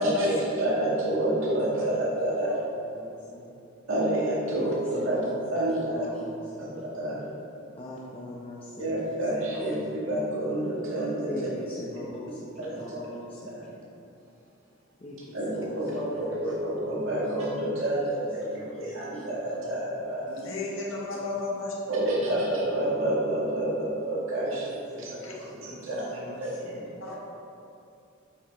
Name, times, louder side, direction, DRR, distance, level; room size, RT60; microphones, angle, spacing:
voice 1, 0.0-2.6 3.9-5.2 5.5-6.1 6.6-7.3 8.8-11.4 12.6-13.0 13.5-13.6 15.3-20.4 21.9-24.7 25.0-26.1 26.4-27.1, right 1 dB, 85° right, -5 dB, 1.9 m, -29 dB
voice 2, 2.8-3.4 4.5-4.6 5.0-5.3 5.8-6.7 7.8-9.0 9.5-9.7 10.8-10.9 11.3-13.8 15.0-15.3 15.7-16.4 17.2-17.3 18.4-18.8 19.1-19.7 21.2-21.3 24.4-24.6 24.9-26.8, left 1 dB, 30° left, -6 dB, 0.9 m, -42 dB
voice 3, 20.3-21.7 25.2-25.3 27.0-27.1, left 3 dB, 80° left, -4 dB, 1.7 m, -32 dB
8.8 x 5.7 x 4.2 m, 2.7 s
head